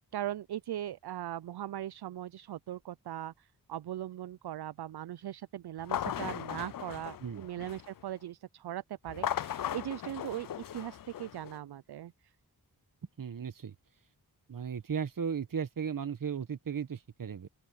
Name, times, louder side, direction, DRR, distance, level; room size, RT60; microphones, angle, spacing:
voice 1, 0.1-12.3, right 12 dB, 75° right, 0.5 m, -40 dB
sound 1, 5.8-8.0 9.1-11.6, left 10 dB, 60° left, 0.5 m, -37 dB
voice 2, 13.2-13.7 14.5-17.5, right 7 dB, 55° right, 1.1 m, -36 dB
wide cardioid pair, 100°, 39 cm